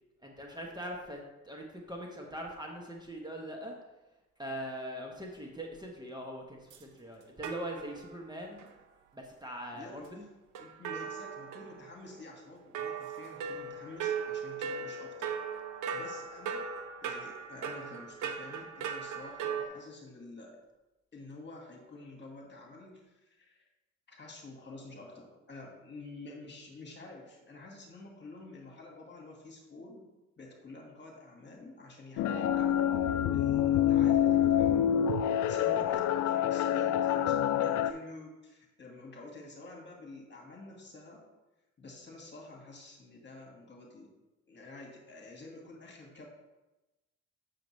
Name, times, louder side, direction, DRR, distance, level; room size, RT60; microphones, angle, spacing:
voice 1, 0.2-1.2 1.4-3.7 4.4-8.6 9.1-10.2 35.6-35.8, right 1 dB, 15° right, 0 dB, 1.2 m, -41 dB
sound 1, 6.7-6.8 7.4-8.2 8.6-8.7 10.5-12.1 12.7-19.7, right 6 dB, 85° right, 0.8 m, -38 dB
voice 2, 9.7-10.3 10.6-15.3 15.9-16.6 17.0-20.6 21.1-23.6 24.1-30.1 30.4-35.0 35.5-41.3 41.8-44.1 44.5-46.3, left 2 dB, 35° left, 0 dB, 1.9 m, -49 dB
sound 2, 32.2-37.9, left 10 dB, 75° left, 0.5 m, -27 dB
7.5 x 6.7 x 3.2 m, 1.0 s
cardioid pair, 90°, 30 cm